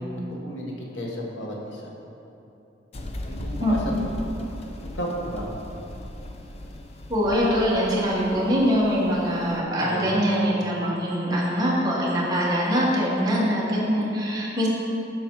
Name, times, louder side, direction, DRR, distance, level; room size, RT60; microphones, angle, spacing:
voice 1, 0.4-1.8 3.2-3.8 4.8-5.4 9.7-10.1, equal, 85° left, -2 dB, 1.3 m, -33 dB
sound 1, 2.9-9.6, left 1 dB, 35° left, 0.5 m, -37 dB
voice 2, 3.6-4.0 7.1-14.7, equal, 20° right, -5 dB, 1.4 m, -23 dB
7.8 x 6.0 x 4.7 m, 2.9 s
head